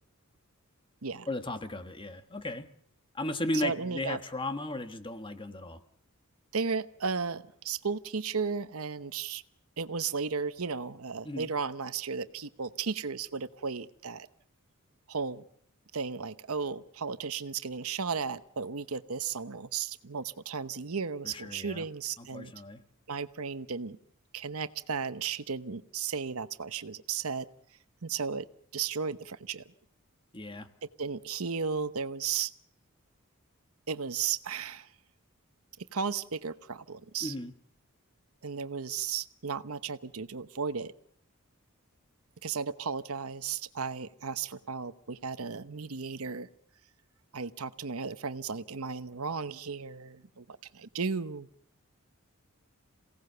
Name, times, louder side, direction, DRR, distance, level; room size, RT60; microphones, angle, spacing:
voice 1, 1.3-2.7 3.1-5.8 11.2-11.5 21.2-21.9 22.2-22.8 30.3-30.7 37.2-37.5, left 1 dB, 25° left, 8 dB, 1.4 m, -35 dB
voice 2, 3.5-4.2 6.5-9.4 9.8-14.3 15.1-15.4 15.9-22.5 23.1-24.0 24.3-27.5 28.0-28.5 28.7-29.6 31.0-32.5 33.9-34.9 35.9-37.3 38.4-40.9 42.4-46.5 47.3-51.5, right 5 dB, 80° right, 12 dB, 1.0 m, -34 dB
27.5 x 17.5 x 6.8 m, 0.65 s
head